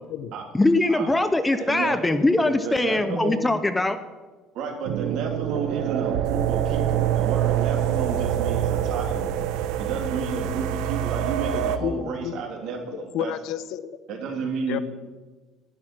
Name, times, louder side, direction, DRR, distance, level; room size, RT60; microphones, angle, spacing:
voice 1, 0.5-4.0, left 2 dB, 10° left, 11 dB, 0.5 m, -22 dB
voice 2, 1.6-2.0 2.4-3.4 4.5-13.3 14.1-14.8, right 4 dB, 60° right, 3 dB, 2.8 m, -32 dB
sound 1, 4.9-11.8, right 11 dB, 75° right, 0.8 m, -25 dB
voice 3, 11.5-12.4 12.9-14.0 14.7-14.8, left 10 dB, 60° left, 14 dB, 0.7 m, -31 dB
12.0 x 11.0 x 6.1 m, 1.3 s
cardioid pair, 150°, 0 cm